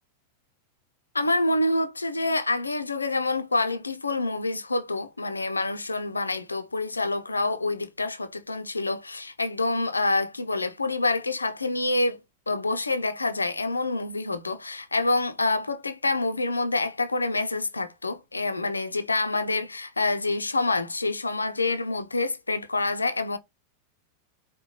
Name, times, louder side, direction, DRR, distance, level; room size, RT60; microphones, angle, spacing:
voice 1, 1.1-12.2 12.5-23.4, left 2 dB, 80° left, 0.5 m, -27 dB
4.8 x 2.2 x 3.0 m
figure-of-eight pair, 90°, 0 cm